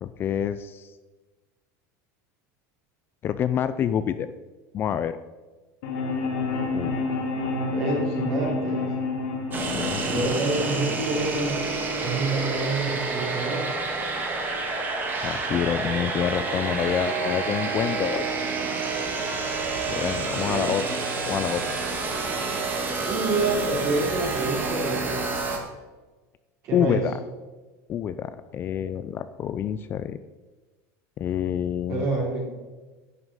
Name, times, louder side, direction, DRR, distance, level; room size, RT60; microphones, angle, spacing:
voice 1, 0.0-0.9 3.2-4.3 4.7-5.2 6.7-7.1 9.7-10.4 15.2-18.3 19.9-20.8 21.2-21.7 26.7-27.1 27.9-30.2 31.2-32.1, left 9 dB, 25° left, 12 dB, 0.4 m, -27 dB
sound 1, 5.8-11.8, left 3 dB, 70° left, 3.2 m, -29 dB
voice 2, 7.7-8.9 10.0-11.6 12.0-13.7 20.5-20.7 23.1-25.2 26.6-27.0 31.9-32.4, right 3 dB, 40° right, -2 dB, 3.6 m, -27 dB
sound 2, 9.5-25.6, right 3 dB, 20° right, 2.0 m, -28 dB
11.0 x 9.8 x 5.5 m, 1.3 s
cardioid pair, 165°, 8 cm